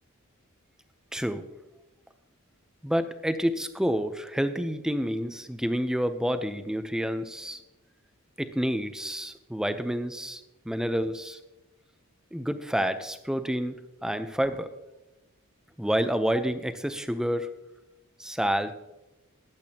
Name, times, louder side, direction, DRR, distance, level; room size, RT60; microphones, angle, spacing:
voice 1, 1.1-1.4 2.8-7.6 8.4-10.4 10.7-11.4 12.3-13.8 14.0-14.7 15.8-17.5 18.2-18.7, equal, 5° right, 10 dB, 0.6 m, -28 dB
15.0 x 10.5 x 2.9 m, 1.0 s
head